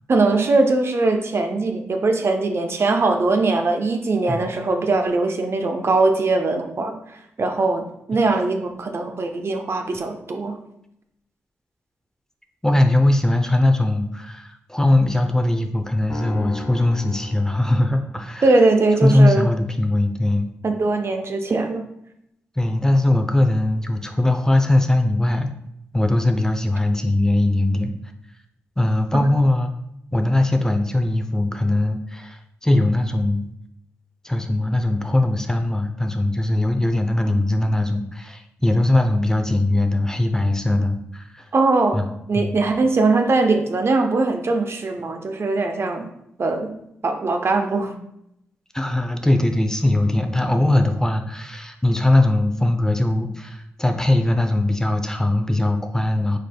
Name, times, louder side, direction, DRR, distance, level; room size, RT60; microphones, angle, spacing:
voice 1, 0.1-6.9 7.4-10.6 18.4-19.5 20.6-21.9 29.1-29.2 41.5-42.0 42.3-46.1 46.4-46.7 47.0-48.0, right 3 dB, 50° right, 5 dB, 0.6 m, -21 dB
voice 2, 12.6-18.4 19.0-20.5 22.6-25.5 25.9-27.9 28.8-29.7 30.1-33.5 34.2-41.5 41.9-42.1 42.3-42.5 48.7-56.4, left 1 dB, 10° left, 5 dB, 0.6 m, -20 dB
sound 1, 16.1-18.5, left 2 dB, 45° left, 1.2 m, -36 dB
5.2 x 4.0 x 2.2 m, 0.78 s
supercardioid pair, 45°, 6 cm